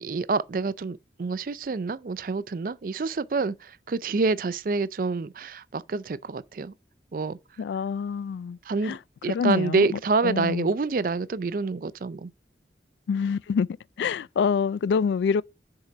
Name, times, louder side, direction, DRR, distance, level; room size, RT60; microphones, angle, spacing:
voice 1, 0.0-6.7 7.1-7.4 8.7-9.0 9.2-12.3, right 4 dB, 50° right, 0.4 m, -27 dB
voice 2, 7.6-8.6 8.8-9.0 9.3-9.9 10.2-10.7 13.1-13.7 14.0-15.4, left 6 dB, 75° left, 0.3 m, -26 dB
6.6 x 4.7 x 5.9 m
head